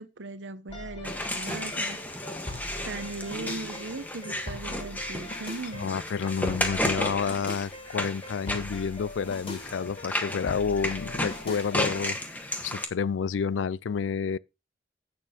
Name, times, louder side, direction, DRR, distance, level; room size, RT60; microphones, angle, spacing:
voice 1, 0.0-2.0 2.6-5.9, right 3 dB, 85° right, 0.9 m, -38 dB
sound 1, 0.7-12.0, left 1 dB, 35° left, 2.5 m, -41 dB
sound 2, 1.0-12.8, left 1 dB, 10° left, 1.4 m, -33 dB
voice 2, 5.7-14.4, left 6 dB, 80° left, 0.4 m, -30 dB
8.3 x 6.9 x 5.1 m
head